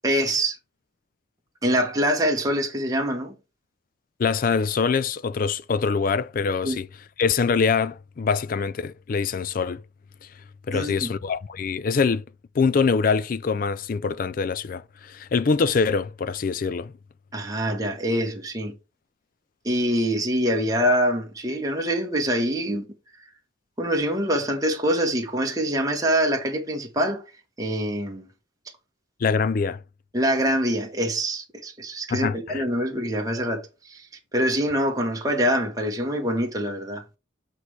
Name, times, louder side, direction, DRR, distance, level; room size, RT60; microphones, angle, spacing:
voice 1, 0.0-0.6 1.6-3.3 6.6-6.8 10.7-11.1 17.3-18.7 19.6-22.8 23.8-27.2 27.6-28.3 30.1-34.0 34.3-37.0, equal, 15° right, 1.1 m, -24 dB
voice 2, 4.2-6.9 7.2-9.8 10.2-10.3 10.7-12.2 12.5-16.9 29.2-29.8 32.1-32.6, left 5 dB, 45° left, 0.3 m, -24 dB
8.2 x 3.2 x 4.7 m
head